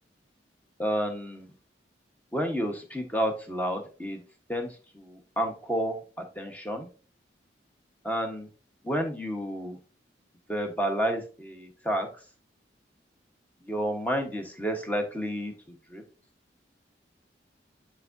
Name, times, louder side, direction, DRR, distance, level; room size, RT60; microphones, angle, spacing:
voice 1, 0.8-1.5 2.3-4.2 4.5-6.9 8.0-8.5 8.8-9.8 10.5-12.1 13.6-15.5 15.9-16.0, equal, 10° left, 4 dB, 1.1 m, -30 dB
9.7 x 4.7 x 2.6 m, 0.35 s
head